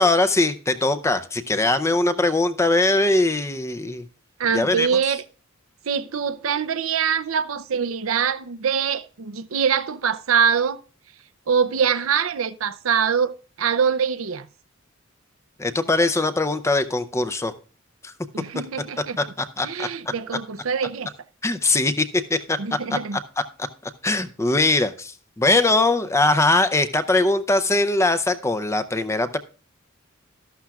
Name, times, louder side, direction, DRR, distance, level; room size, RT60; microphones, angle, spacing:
voice 1, 0.0-4.0 4.5-4.9 15.6-17.5 18.0-18.1 19.2-19.9 21.4-22.6 22.9-23.2 24.0-29.4, left 2 dB, 15° left, 0.6 m, -21 dB
voice 2, 4.4-5.2 5.9-10.8 11.5-14.5 18.3-19.2 19.6-21.1 22.6-23.2, right 7 dB, 85° right, 0.6 m, -24 dB
13.0 x 11.5 x 2.4 m
head